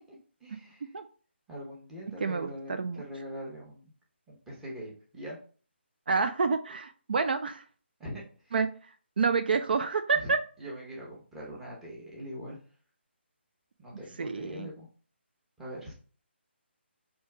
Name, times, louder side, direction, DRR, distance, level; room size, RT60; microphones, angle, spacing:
voice 1, 0.1-0.9 1.5-3.8 4.3-5.4 8.0-8.6 10.1-10.3 10.6-12.6 13.8-14.9 15.6-15.9, equal, 5° right, -5 dB, 0.7 m, -42 dB
voice 2, 6.1-7.6 8.5-8.7 9.2-10.4 14.2-14.7, right 5 dB, 50° right, 8 dB, 0.3 m, -28 dB
4.4 x 2.8 x 3.3 m, 0.41 s
hypercardioid pair, 170°, 6 cm